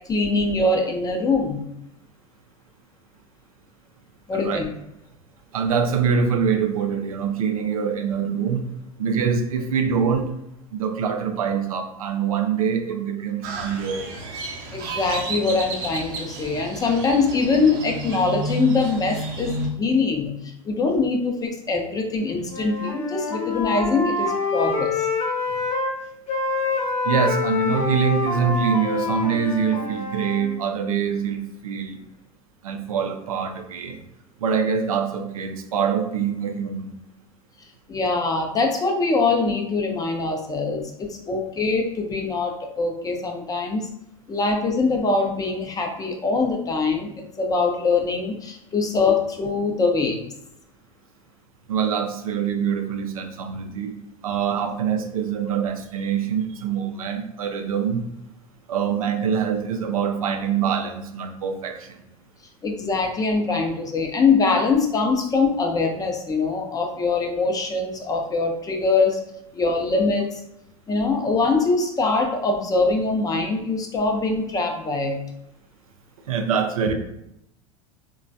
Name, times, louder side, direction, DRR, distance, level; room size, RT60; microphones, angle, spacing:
voice 1, 0.1-1.6 4.3-4.7 14.7-25.1 37.9-43.9 44.3-50.2 62.6-69.2 69.5-70.4 70.9-75.2, left 3 dB, 20° left, 2 dB, 0.5 m, -23 dB
voice 2, 5.5-8.7 9.0-10.3 10.7-14.2 27.0-32.0 32.6-34.0 34.4-36.9 51.7-53.9 54.2-58.0 58.7-62.0 76.3-76.9, right 7 dB, 85° right, 5 dB, 0.4 m, -24 dB
Crow, 13.4-19.7, right 1 dB, 50° right, 0.7 m, -31 dB
Wind instrument woodwind instrument, 22.4-25.9 26.3-30.5, left 3 dB, 40° left, 0.9 m, -26 dB
3.0 x 2.2 x 2.6 m, 0.80 s
hypercardioid pair, 95°, 18 cm